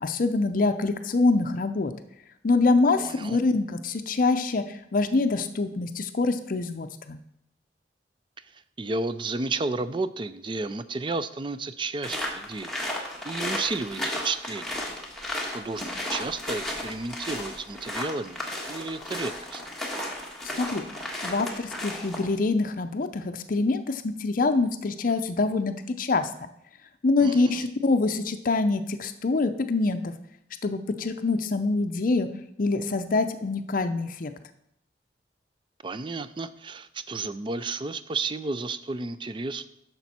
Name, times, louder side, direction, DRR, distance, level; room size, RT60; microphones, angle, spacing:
voice 1, 0.0-1.9 2.4-7.2 20.6-20.8 21.2-26.5 27.0-30.1 30.6-32.3 32.6-34.3, left 3 dB, 50° left, 9 dB, 0.5 m, -25 dB
voice 2, 2.9-3.4 8.5-14.7 15.5-19.6 27.2-27.7 35.8-39.7, right 3 dB, 30° right, 13 dB, 0.4 m, -32 dB
sound 1, 12.0-22.3, left 1 dB, ahead, 1.6 m, -34 dB
10.5 x 6.7 x 4.2 m, 0.76 s
head